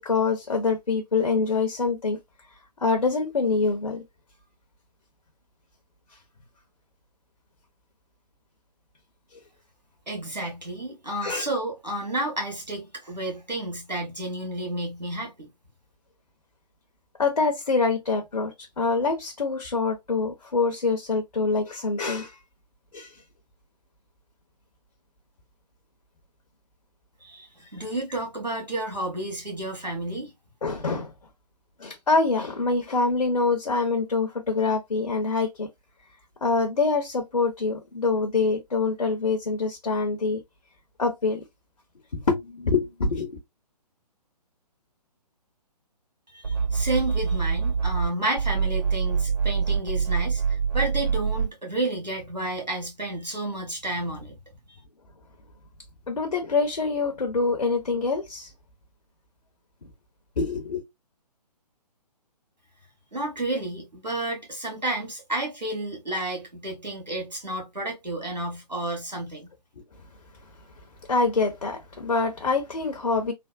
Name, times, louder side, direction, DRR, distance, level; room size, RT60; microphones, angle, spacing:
voice 1, 0.0-2.2 2.8-4.0 11.2-11.5 17.2-22.4 22.9-23.2 30.6-31.1 31.8-35.7 36.4-40.4 41.0-41.4 42.1-43.4 56.1-58.5 59.8-59.9 60.4-60.8 69.8-69.9 71.1-73.3, left 4 dB, 70° left, 0.7 m, -25 dB
voice 2, 10.1-15.5 27.2-30.3 46.3-54.4 63.1-69.5, right 1 dB, 85° right, 1.6 m, -31 dB
sound 1, 46.4-48.1 48.4-51.5, right 6 dB, 45° right, 1.8 m, -25 dB
3.3 x 2.0 x 2.4 m
figure-of-eight pair, 135°, 21 cm